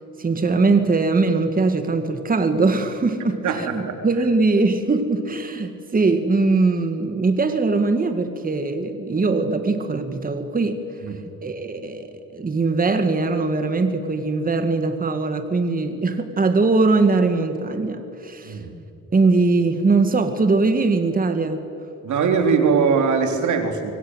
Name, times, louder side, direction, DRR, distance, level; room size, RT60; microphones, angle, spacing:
voice 1, 0.2-10.8 11.4-12.1 12.3-18.6 19.1-21.6, right 3 dB, 30° right, 7 dB, 2.1 m, -21 dB
voice 2, 3.4-3.9 11.0-11.2 18.4-18.7 22.0-23.9, right 5 dB, 75° right, 5 dB, 3.8 m, -21 dB
25.5 x 24.0 x 8.2 m, 2.8 s
cardioid pair, 90°, 30 cm